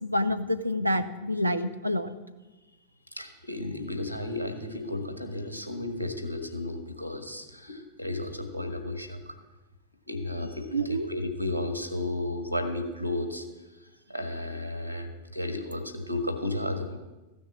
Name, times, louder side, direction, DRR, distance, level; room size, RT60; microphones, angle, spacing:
voice 1, 0.0-2.1 10.4-11.1, equal, 85° right, 9 dB, 0.8 m, -28 dB
voice 2, 3.1-9.4 10.1-13.4 13.8-17.0, left 1 dB, 90° left, 8 dB, 1.6 m, -33 dB
14.5 x 6.4 x 8.5 m, 1.1 s
figure-of-eight pair, 90°, 0 cm